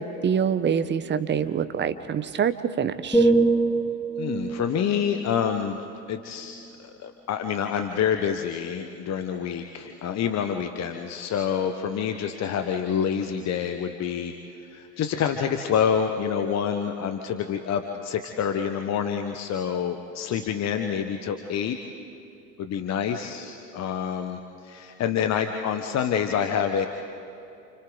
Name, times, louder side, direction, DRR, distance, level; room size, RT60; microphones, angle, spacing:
voice 1, 0.0-3.3, right 7 dB, 20° right, 11 dB, 1.1 m, -26 dB
sound 1, 3.1-7.0 7.5-7.8, right 3 dB, 5° left, 1.3 m, -26 dB
voice 2, 4.2-5.8 6.1-14.3 14.7-21.8 22.6-26.9, left 8 dB, 30° left, 6 dB, 1.3 m, -27 dB
29.5 x 29.5 x 4.0 m, 2.8 s
hypercardioid pair, 85°, 50 cm